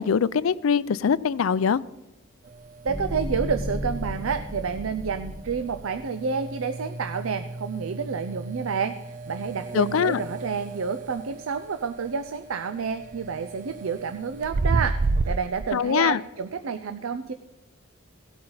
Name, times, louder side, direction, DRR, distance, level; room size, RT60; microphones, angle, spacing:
voice 1, 0.0-1.8 9.7-10.2 15.7-16.2, left 6 dB, 85° left, 18 dB, 0.4 m, -22 dB
sound 1, 2.4-15.7, right 3 dB, 40° right, 0.3 m, -33 dB
voice 2, 2.8-17.3, right 6 dB, 90° right, 9 dB, 0.6 m, -29 dB
sound 2, 2.9-6.0, equal, 20° right, 1.4 m, -33 dB
17.0 x 8.7 x 3.9 m, 1.0 s
head